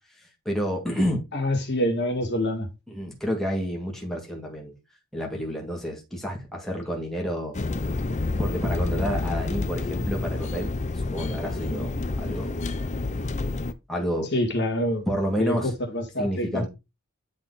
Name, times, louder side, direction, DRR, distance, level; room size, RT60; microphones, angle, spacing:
voice 1, 0.5-1.2 2.9-4.7 5.1-7.6 8.4-10.7 11.1-12.5 13.9-14.3 15.1-15.7 16.2-16.7, equal, ahead, 1.9 m, -29 dB
voice 2, 1.3-2.7 14.3-15.1 15.4-16.7, left 1 dB, 50° left, 2.0 m, -26 dB
sound 1, 7.5-13.7, left 3 dB, 30° left, 0.5 m, -29 dB
10.0 x 4.0 x 4.0 m
head